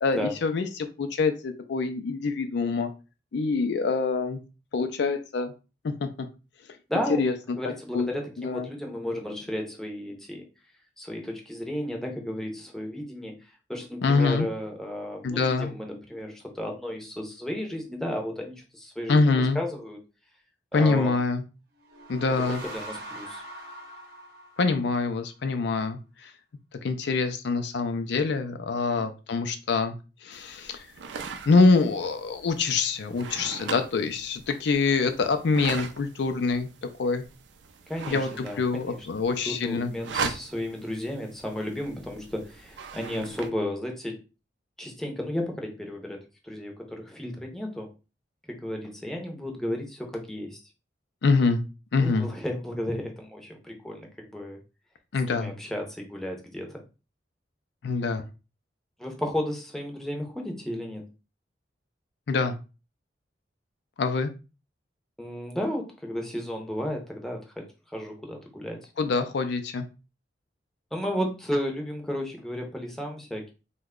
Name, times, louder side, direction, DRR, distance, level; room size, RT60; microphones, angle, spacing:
voice 1, 0.0-2.9 3.3-4.4 4.7-5.5 5.8-6.1 7.1-7.6 7.9-8.1 8.4-8.7 14.0-14.5 15.2-15.7 19.1-19.6 20.7-21.4 22.1-22.6 24.6-26.3 26.8-30.0 30.2-30.9 31.5-36.7 37.0-37.2 38.1-39.9 40.2-40.3 51.2-51.6 51.9-52.3 55.1-55.5 57.8-58.2 62.3-62.5 64.0-64.3 69.0-69.9, left 4 dB, 70° left, 8 dB, 0.4 m, -25 dB
voice 2, 6.9-7.3 7.6-10.4 11.0-13.4 13.7-20.0 20.7-21.2 22.5-23.4 29.0-29.1 37.9-39.1 39.5-44.2 44.8-47.9 48.5-50.6 52.0-54.6 55.3-56.8 59.0-61.1 65.2-68.9 70.9-73.5, equal, ahead, 1 dB, 0.6 m, -33 dB
sound 1, 21.8-25.3, right 1 dB, 60° right, 0.8 m, -42 dB
sound 2, 30.3-43.5, right 5 dB, 80° right, 0.4 m, -40 dB
2.9 x 2.2 x 3.6 m, 0.30 s
head